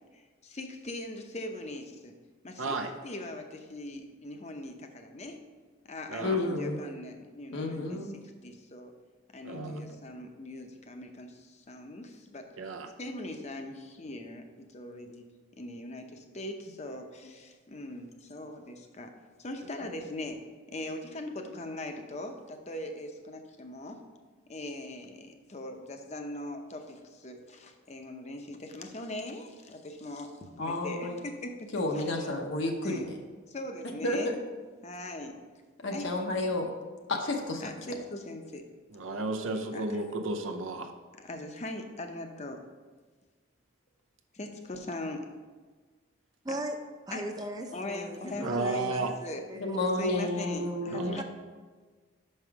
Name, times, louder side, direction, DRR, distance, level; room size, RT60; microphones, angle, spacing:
voice 1, 0.1-2.1 2.4-2.8 3.0-5.4 5.8-8.9 9.3-12.5 13.0-15.3 15.6-19.1 19.4-20.4 20.7-24.0 24.5-32.3 32.8-33.1 33.5-34.4 34.8-35.4 35.9-36.1 37.6-38.7 39.7-40.0 41.2-42.6 44.3-45.3 47.1-47.2 47.7-49.4 50.0-51.2, left 1 dB, 35° left, 5 dB, 0.7 m, -41 dB
voice 2, 2.6-2.9 6.1-6.4 9.4-9.8 12.6-12.9 19.8-19.9 38.9-40.9 48.4-49.1 50.9-51.2, right 3 dB, 85° right, 5 dB, 0.7 m, -33 dB
voice 3, 6.2-6.8 7.5-8.1 9.5-10.0 30.6-31.2 31.7-33.1 34.0-34.4 35.8-36.6 37.1-37.7 49.6-51.1, left 2 dB, 65° left, 1 dB, 0.8 m, -31 dB
voice 4, 46.4-46.8 47.1-49.2 49.5-50.0 51.1-51.2, right 1 dB, 20° right, 5 dB, 0.5 m, -38 dB
5.9 x 5.5 x 4.6 m, 1.4 s
head